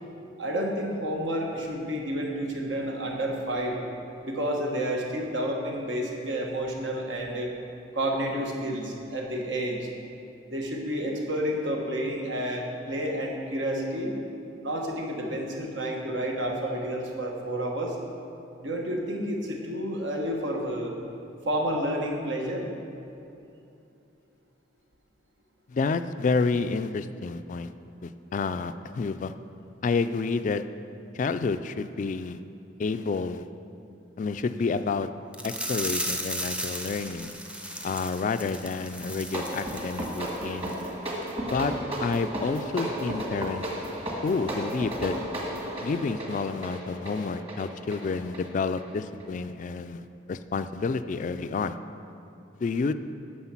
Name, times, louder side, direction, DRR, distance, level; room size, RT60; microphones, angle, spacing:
voice 1, 0.4-3.8 4.2-7.5 7.9-9.9 10.5-14.1 14.6-18.0 18.6-20.9 21.4-22.7, equal, 80° right, 0 dB, 1.4 m, -30 dB
voice 2, 25.7-27.7 28.0-29.3 29.8-30.6 31.1-32.4 32.8-33.4 34.2-35.1 35.4-37.4 37.8-40.8 41.4-41.7 42.0-43.6 44.2-45.2 45.8-51.7 52.6-52.9, left 4 dB, 40° left, 11 dB, 0.3 m, -29 dB
sound 1, 35.3-40.4 40.7-40.8 41.2-41.3, right 1 dB, 5° right, 0.6 m, -35 dB
sound 2, 39.0-49.3, right 1 dB, 30° right, 1.6 m, -34 dB
9.6 x 6.3 x 5.9 m, 2.8 s
head